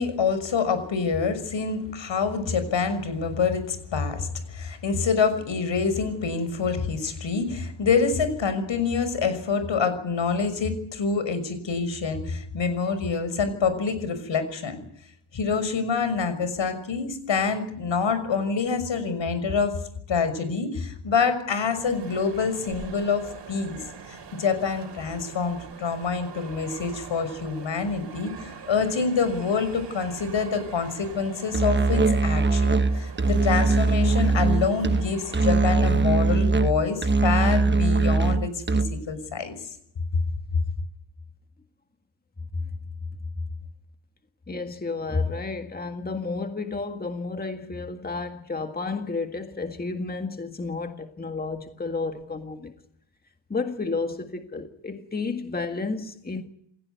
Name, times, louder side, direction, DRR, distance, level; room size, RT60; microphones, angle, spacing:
voice 1, 0.0-14.8 15.3-19.8 20.1-23.2 23.5-23.8 24.1-39.7, left 5 dB, 75° left, 6.1 m, -26 dB
sound 1, 21.5-35.7, right 6 dB, 65° right, 3.7 m, -43 dB
Musical instrument, 31.5-39.1, right 3 dB, 25° right, 1.1 m, -21 dB
voice 2, 44.5-52.7 53.5-56.4, left 3 dB, 20° left, 1.8 m, -31 dB
29.0 x 16.5 x 9.4 m
wide cardioid pair, 140°, 45 cm